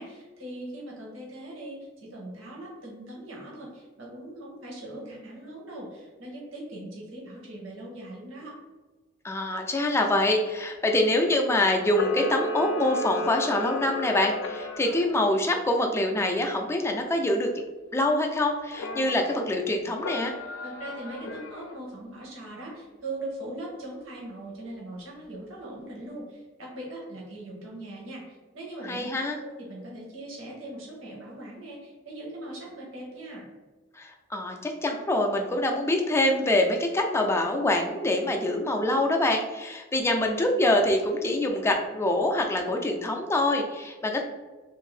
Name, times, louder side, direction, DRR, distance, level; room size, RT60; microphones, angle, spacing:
voice 1, 0.0-8.5 20.6-29.1 29.4-33.5, right 1 dB, 80° right, -3 dB, 0.9 m, -40 dB
voice 2, 9.2-17.5 17.9-20.3 28.9-29.4 33.9-44.2, left 1 dB, 15° left, 2 dB, 0.3 m, -25 dB
Camera, 11.8-15.1 18.7-19.5 20.0-21.8, left 1 dB, 85° left, 0.4 m, -33 dB
2.7 x 2.6 x 3.2 m, 1.2 s
head